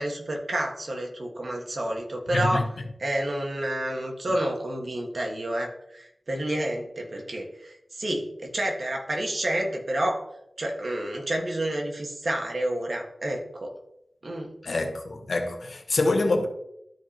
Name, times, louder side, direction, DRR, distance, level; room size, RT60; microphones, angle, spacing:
voice 1, 0.0-2.7 3.0-10.2 10.6-13.7 14.2-14.5, right 1 dB, 60° right, 1.6 m, -29 dB
voice 2, 2.3-2.6 14.6-16.5, left 2 dB, 75° left, 1.2 m, -25 dB
12.5 x 5.2 x 2.9 m
wide cardioid pair, 90°, 0 cm